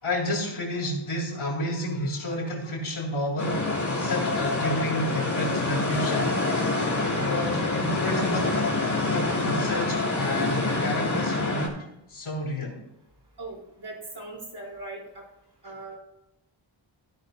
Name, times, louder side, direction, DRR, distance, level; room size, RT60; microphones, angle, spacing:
voice 1, 0.0-6.5 7.0-8.7 9.1-12.8 15.6-15.8, left 1 dB, 75° left, -2 dB, 3.8 m, -31 dB
sound 1, 3.4-11.7, left 2 dB, 35° left, 3.8 m, -26 dB
voice 2, 13.4-15.2 15.6-16.0, right 2 dB, 50° right, -1 dB, 4.0 m, -39 dB
16.5 x 11.0 x 2.3 m, 0.81 s
cardioid pair, 45°, 49 cm